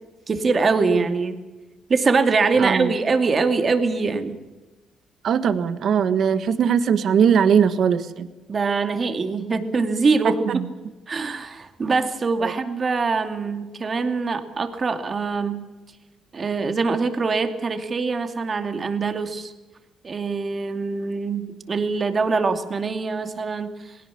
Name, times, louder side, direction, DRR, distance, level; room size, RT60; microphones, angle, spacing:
voice 1, 0.3-1.4 1.9-4.4 8.5-10.4 11.1-15.6 16.3-19.5 20.0-24.0, right 4 dB, 40° right, 7 dB, 2.6 m, -23 dB
voice 2, 2.6-2.9 5.2-8.3 10.5-10.7 12.4-12.5, right 7 dB, 65° right, 12 dB, 1.5 m, -20 dB
20.5 x 18.0 x 8.6 m, 1.2 s
cardioid pair, 90°, 0 cm